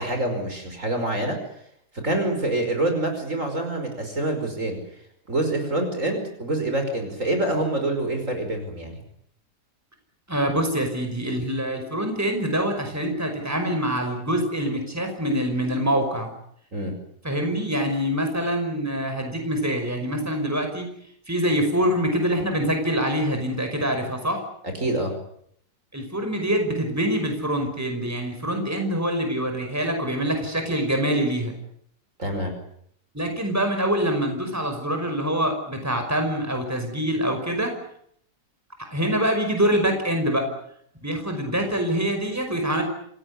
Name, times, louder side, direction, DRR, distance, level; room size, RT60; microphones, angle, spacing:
voice 1, 0.0-1.4 2.0-4.8 5.3-9.0 16.7-16.9 24.7-25.1 32.2-32.5, right 1 dB, 50° right, 5 dB, 5.7 m, -26 dB
voice 2, 10.3-16.3 17.2-20.9 21.3-24.4 25.9-31.5 33.1-37.7 38.9-40.5 41.0-42.8, equal, 10° right, 5 dB, 5.5 m, -25 dB
27.5 x 18.0 x 9.8 m, 0.69 s
omnidirectional pair, 1.7 m